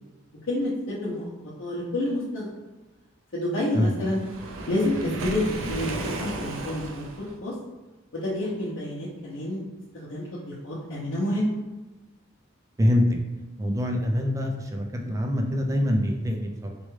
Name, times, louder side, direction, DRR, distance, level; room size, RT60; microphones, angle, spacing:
voice 1, 0.5-1.2 1.6-2.5 3.3-4.2 4.7-7.0 7.4-7.5 8.1-9.6 9.9-11.5, left 1 dB, 80° left, -8 dB, 0.7 m, -28 dB
Waves surf, 4.0-7.3, right 2 dB, 80° right, 0.4 m, -34 dB
voice 2, 13.6-16.8, left 1 dB, 15° right, 2 dB, 0.3 m, -25 dB
4.5 x 2.2 x 3.1 m, 1.1 s
head